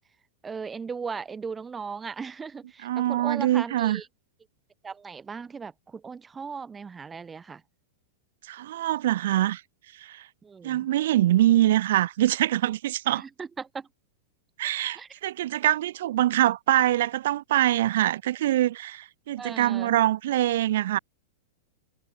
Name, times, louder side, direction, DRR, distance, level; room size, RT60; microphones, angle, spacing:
voice 1, 0.4-4.1 4.8-7.6 10.4-10.9 13.1-13.9 14.9-15.1 19.4-20.0, right 5 dB, 15° right, 3.8 m, -37 dB
voice 2, 2.8-4.0 8.5-9.6 10.0-10.2 10.6-13.2 14.6-21.0, right 13 dB, 60° right, 1.9 m, -24 dB
figure-of-eight pair, 95°, 0 cm